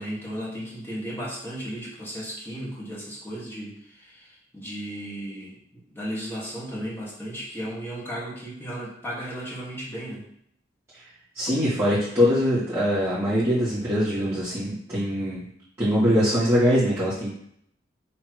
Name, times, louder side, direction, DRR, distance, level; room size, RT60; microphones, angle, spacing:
voice 1, 0.0-10.2, equal, 10° left, -5 dB, 1.6 m, -35 dB
voice 2, 11.3-15.4 15.8-17.3, equal, 15° right, -13 dB, 2.1 m, -22 dB
6.2 x 3.4 x 4.7 m, 0.69 s
head